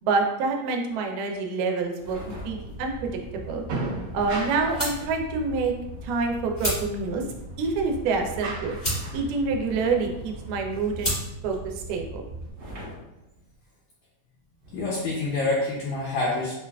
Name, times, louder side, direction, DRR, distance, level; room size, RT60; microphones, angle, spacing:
voice 1, 0.0-3.7 4.1-5.7 6.0-7.2 7.6-8.8 9.1-11.1 11.4-12.2, right 4 dB, 90° right, 2 dB, 2.1 m, -27 dB
sound 1, 2.0-2.9 4.1-6.5 8.8-10.8 12.5-13.7 14.6-14.8, equal, 50° right, 1.6 m, -45 dB
sound 2, 2.1-12.5, equal, 40° left, 0.7 m, -35 dB
sound 3, 2.4-10.6, right 3 dB, 70° right, 1.9 m, -39 dB
voice 2, 14.7-16.5, left 2 dB, 80° left, -5 dB, 1.7 m, -26 dB
5.4 x 2.3 x 2.2 m, 0.93 s
omnidirectional pair, 3.7 m